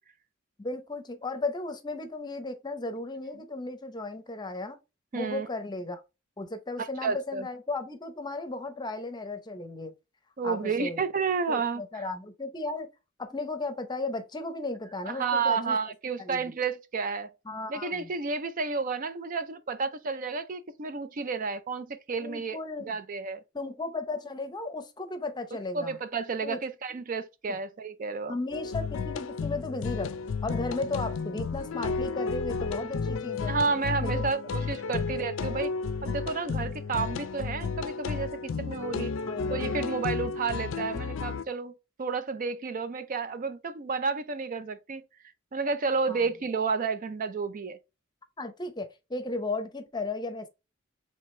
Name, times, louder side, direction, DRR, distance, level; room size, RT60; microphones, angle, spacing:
voice 1, 0.6-4.8 5.1-6.0 6.4-9.9 10.4-11.0 11.5-12.9 13.2-15.8 16.2-16.5 17.4-18.1 22.2-23.0 23.5-26.0 26.4-26.6 27.5-27.6 28.3-30.1 30.4-33.5 34.0-34.2 34.9-35.1 38.7-39.8 46.1-46.2 48.4-50.5, left 2 dB, 20° left, 0.7 m, -35 dB
voice 2, 5.1-5.5 6.8-7.5 10.4-12.0 15.1-17.3 17.7-22.6 22.9-23.4 25.7-28.4 33.5-35.7 36.0-39.1 39.5-41.7 42.0-45.0 45.5-47.8, right 4 dB, 45° right, 0.5 m, -31 dB
sound 1, 28.5-41.4, left 4 dB, 80° left, 0.4 m, -32 dB
4.9 x 3.3 x 3.1 m
head